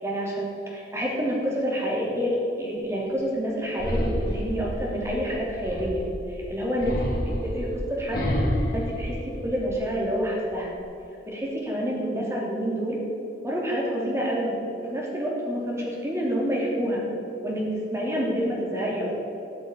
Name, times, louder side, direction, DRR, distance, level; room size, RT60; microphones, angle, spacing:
voice 1, 0.0-8.3 8.7-10.7 11.2-13.0 13.4-17.0 17.4-19.2, equal, 15° right, -3 dB, 3.3 m, -28 dB
sound 1, 3.8-6.2 6.8-9.8 10.3-10.8, equal, 55° left, 3.1 m, -29 dB
13.5 x 7.8 x 9.1 m, 2.7 s
head